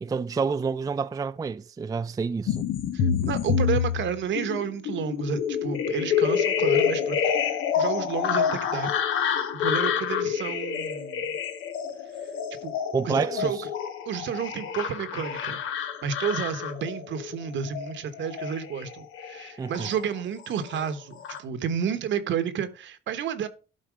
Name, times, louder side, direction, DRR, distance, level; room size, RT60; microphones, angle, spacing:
voice 1, 0.0-2.6 12.9-13.7 19.6-19.9, right 5 dB, 20° right, 0.4 m, -28 dB
sound 1, 2.5-20.2 20.5-21.4, left 7 dB, 90° left, 1.1 m, -28 dB
voice 2, 2.9-7.5 7.8-8.9 9.5-11.3 12.2-12.3 12.6-12.8 13.0-13.6 14.0-23.5, right 7 dB, 70° right, 1.1 m, -31 dB
11.5 x 4.2 x 4.9 m
cardioid pair, 90°, 20 cm